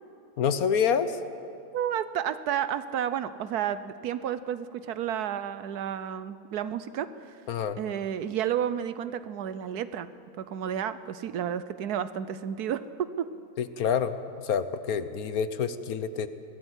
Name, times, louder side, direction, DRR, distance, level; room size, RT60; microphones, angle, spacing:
voice 1, 0.4-1.1 7.5-7.8 13.6-14.2 14.4-16.3, left 7 dB, 65° left, 12 dB, 1.3 m, -27 dB
voice 2, 1.7-7.4 7.8-10.1 10.4-13.3, right 9 dB, 75° right, 13 dB, 1.3 m, -31 dB
22.5 x 17.0 x 8.2 m, 2.6 s
omnidirectional pair, 1.7 m